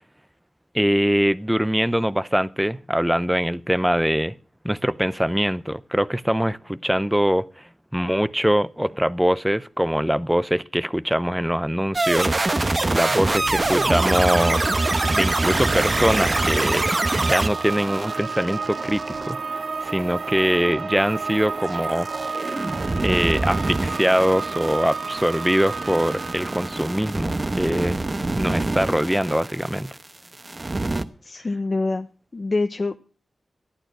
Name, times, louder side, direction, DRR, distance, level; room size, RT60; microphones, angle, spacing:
voice 1, 0.7-4.3 4.6-7.6 7.9-14.7 15.1-16.9 17.2-22.1 23.0-28.0 28.4-29.9, equal, 5° right, 0.6 m, -23 dB
sound 1, 11.9-19.3 21.7-30.1 30.3-31.0, right 2 dB, 25° right, 1.0 m, -25 dB
sound 2, 13.2-27.6, right 4 dB, 60° right, 1.7 m, -32 dB
voice 2, 31.2-32.1 32.3-33.0, left 3 dB, 35° left, 0.8 m, -25 dB
13.5 x 12.0 x 6.1 m
wide cardioid pair, 135°, 0 cm